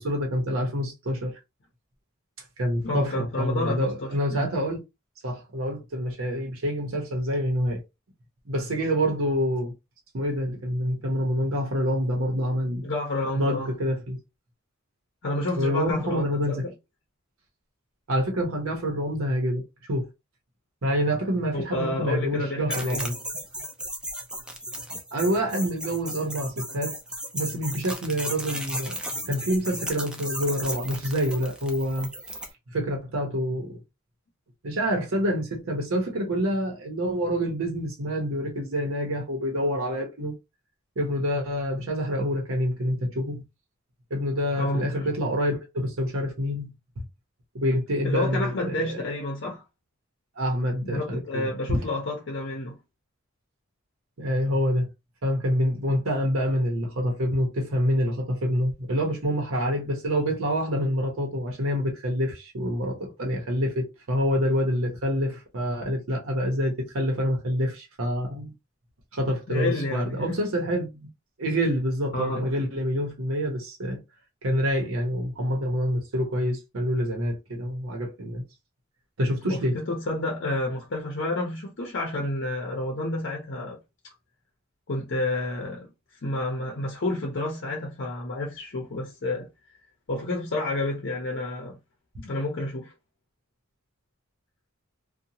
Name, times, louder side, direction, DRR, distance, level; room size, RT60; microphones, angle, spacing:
voice 1, 0.0-1.4 2.6-4.8 5.2-7.8 8.5-9.7 10.1-12.8 13.3-14.2 15.6-16.7 18.1-19.6 19.9-20.1 20.8-23.1 25.1-26.9 27.3-29.0 29.3-32.1 32.7-33.8 34.6-40.3 41.0-43.4 44.1-47.1 47.5-49.1 50.4-51.8 54.2-54.9 55.2-68.5 69.1-70.9 71.4-74.0 74.4-78.4 79.2-79.8, equal, 80° right, 0.8 m, -27 dB
voice 2, 2.8-4.5 12.8-13.7 15.2-16.7 21.5-23.1 44.6-45.1 48.0-49.6 50.8-52.8 69.5-70.1 72.1-72.5 79.4-83.8 84.9-85.9 86.2-89.5 90.1-91.8 92.2-92.9, left 2 dB, 60° left, 0.7 m, -30 dB
sound 1, 22.7-32.5, right 1 dB, 5° right, 0.5 m, -35 dB
2.7 x 2.2 x 2.7 m
head